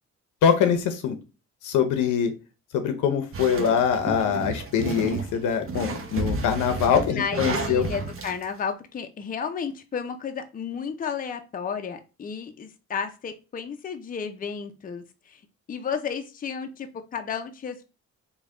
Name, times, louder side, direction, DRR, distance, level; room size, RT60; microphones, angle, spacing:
voice 1, 0.4-1.2 1.6-2.3 2.7-7.9, left 7 dB, 85° left, 0.8 m, -23 dB
sound 1, 3.3-8.4, right 4 dB, 45° right, 0.7 m, -32 dB
voice 2, 7.1-15.4 15.7-17.8, left 6 dB, 30° left, 0.5 m, -32 dB
3.4 x 2.3 x 3.6 m
cardioid pair, 90°, 30 cm